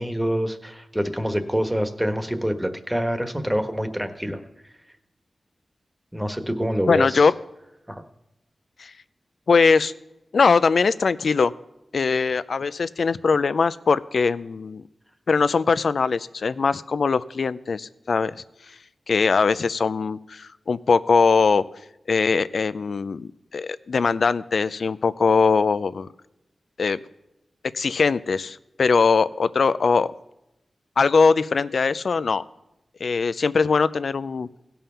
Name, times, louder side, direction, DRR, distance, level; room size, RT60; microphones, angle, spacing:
voice 1, 0.0-4.4 6.1-7.3 7.9-8.0, equal, 5° right, 7 dB, 1.3 m, -26 dB
voice 2, 6.9-7.3 8.8-8.9 9.5-9.9 10.3-11.5 11.9-14.8 15.3-18.4 19.1-21.6 22.1-26.1 26.8-27.0 27.7-30.1 31.0-32.4 33.0-34.5, left 4 dB, 75° left, 15 dB, 0.4 m, -21 dB
16.5 x 5.6 x 5.6 m, 0.90 s
cardioid pair, 45°, 0 cm